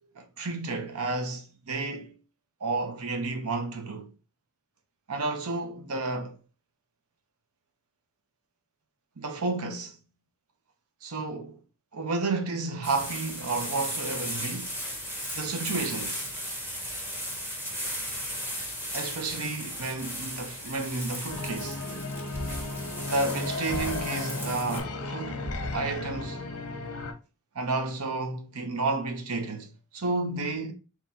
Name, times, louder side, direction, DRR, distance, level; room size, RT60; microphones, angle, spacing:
voice 1, 0.2-2.1 2.6-4.1 5.1-6.4 9.2-10.0 11.0-11.6 11.9-14.7 15.3-16.3 18.9-21.8 23.1-26.4 27.5-30.7, right 3 dB, 85° right, 0.8 m, -31 dB
sound 1, 12.8-24.8, equal, 10° right, 1.4 m, -36 dB
sound 2, 21.3-27.1, left 2 dB, 80° left, 0.8 m, -34 dB
3.8 x 3.0 x 4.3 m
head